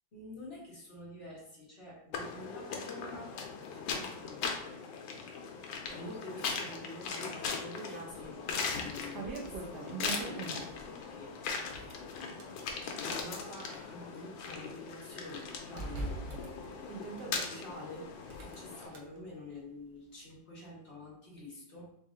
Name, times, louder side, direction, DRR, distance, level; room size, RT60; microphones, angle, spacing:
voice 1, 0.1-3.3 3.7-4.4 5.9-11.6 11.9-12.5 12.8-17.0 17.3-18.1 18.4-21.9, left 1 dB, 40° left, -6 dB, 1.1 m, -47 dB
sound 1, 2.1-18.9, left 5 dB, 85° left, 1.4 m, -40 dB
sound 2, 8.2-8.3 8.8-10.9 11.6-12.6 13.2-14.6 15.0-15.1 15.8-17.6 18.2-19.0, right 3 dB, 70° right, 1.2 m, -42 dB
4.1 x 2.5 x 3.6 m, 0.74 s
omnidirectional pair, 2.1 m